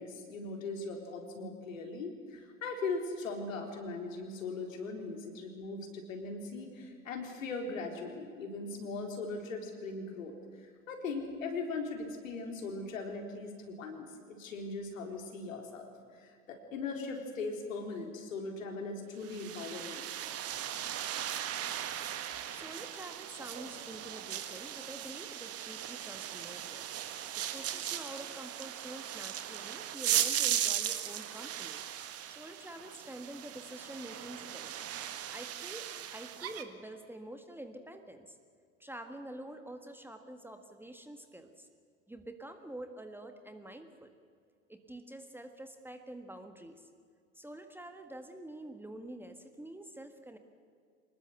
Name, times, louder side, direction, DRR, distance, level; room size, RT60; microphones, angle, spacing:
voice 1, 0.0-10.3 10.9-20.1, left 3 dB, 70° left, 3 dB, 4.1 m, -39 dB
sound 1, 19.2-36.6, right 11 dB, 35° right, 1.8 m, -37 dB
voice 2, 22.5-26.9 27.3-31.8 32.3-34.8 35.3-38.4 38.8-41.7 42.1-44.1 44.7-46.9 47.3-50.4, right 1 dB, 5° right, 7 dB, 1.7 m, -47 dB
25.0 x 20.5 x 8.0 m, 2.2 s
figure-of-eight pair, 80°, 42 cm